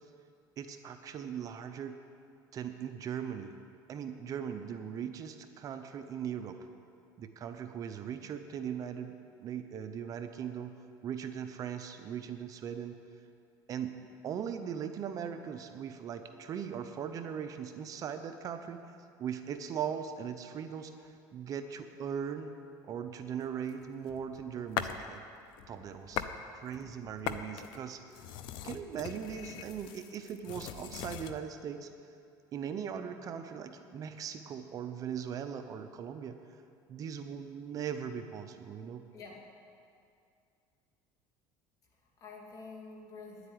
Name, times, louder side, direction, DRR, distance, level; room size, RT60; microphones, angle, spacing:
voice 1, 0.6-2.0 2.5-3.6 3.9-6.6 7.2-10.7 11.0-13.0 13.7-18.8 19.2-20.9 21.3-22.5 22.8-25.2 25.7-26.2 26.5-28.0 28.6-31.9 32.5-36.4 36.9-39.0, right 8 dB, 40° right, 8 dB, 0.7 m, -39 dB
sound 1, 23.7-25.1 25.5-26.4 26.7-31.4, left 10 dB, 65° left, 0.7 m, -40 dB
voice 2, 39.1-39.4 41.9-43.5, left 4 dB, 40° left, -2 dB, 2.7 m, -48 dB
10.0 x 8.1 x 9.8 m, 2.4 s
cardioid pair, 130°, 9 cm